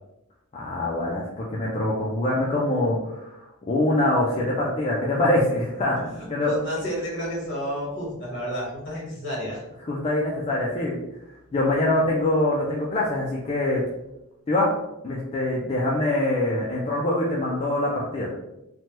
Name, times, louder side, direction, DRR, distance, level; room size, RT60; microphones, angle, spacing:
voice 1, 0.6-3.4 3.7-6.0 6.3-6.5 9.8-11.0 11.5-13.8 14.5-14.7 15.0-18.4, left 1 dB, 25° left, -5 dB, 0.4 m, -24 dB
voice 2, 6.0-9.6, equal, 55° left, -5 dB, 1.4 m, -31 dB
3.2 x 2.1 x 2.8 m, 0.91 s
head